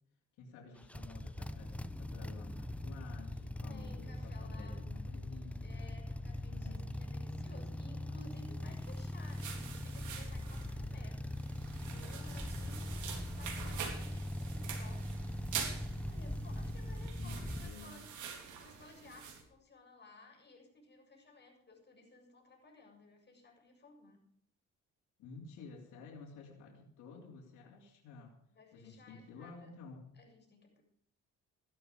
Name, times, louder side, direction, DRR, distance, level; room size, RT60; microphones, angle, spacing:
voice 1, 0.4-6.0 6.5-6.9 17.2-18.0 25.2-28.3 28.7-30.1, left 4 dB, 90° left, -2 dB, 3.1 m, -52 dB
sound 1, 0.8-17.7, left 1 dB, 5° left, 0.9 m, -41 dB
voice 2, 3.6-4.8 5.6-15.6 16.1-18.1 18.6-24.2 28.5-29.7 30.1-30.8, left 3 dB, 35° left, 1 dB, 7.2 m, -58 dB
sound 2, 8.7-19.4, right 7 dB, 75° right, 3.7 m, -46 dB
15.5 x 12.0 x 5.1 m, 0.69 s
cardioid pair, 90°, 30 cm